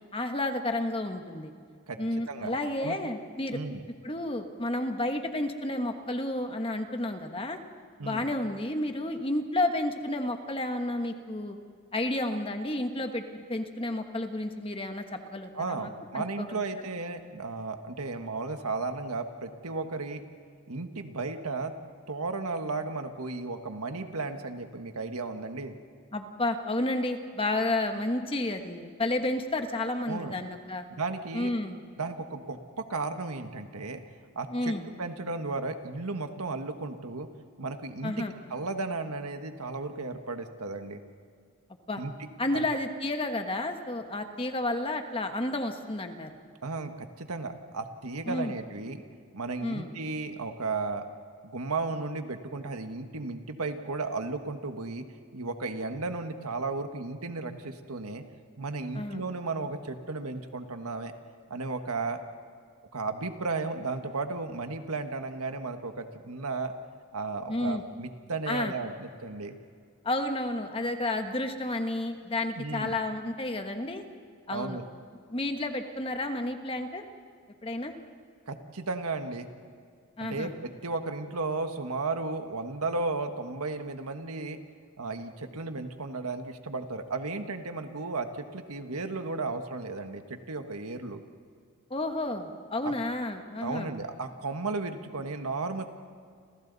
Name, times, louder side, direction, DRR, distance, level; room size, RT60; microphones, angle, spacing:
voice 1, 0.1-1.5 2.0-3.6 4.0-7.6 8.0-11.6 11.9-16.6 26.1-30.9 31.3-31.8 34.5-34.8 38.0-38.3 41.9-42.0 42.4-46.3 48.3-48.6 49.6-49.9 58.9-59.2 67.5-67.8 68.5-68.7 70.0-74.0 74.5-74.8 75.3-77.0 77.6-77.9 80.2-80.5 91.9-93.9, left 1 dB, 25° left, 6 dB, 1.3 m, -31 dB
voice 2, 2.3-3.0 3.5-3.8 8.0-8.3 15.5-20.2 20.7-21.7 22.1-25.7 30.1-30.3 30.9-31.5 32.0-34.0 34.3-34.7 35.0-37.3 37.6-38.1 38.5-41.0 42.0-42.1 42.5-42.6 46.6-49.0 49.3-51.0 51.4-55.0 55.3-58.2 58.6-61.1 61.5-62.2 62.9-66.7 67.1-69.5 72.6-72.9 74.5-74.8 78.5-79.5 80.2-84.6 85.0-91.2 92.8-92.9 93.6-95.8, right 3 dB, 80° right, 7 dB, 1.5 m, -34 dB
30.0 x 27.0 x 4.1 m, 2.2 s
head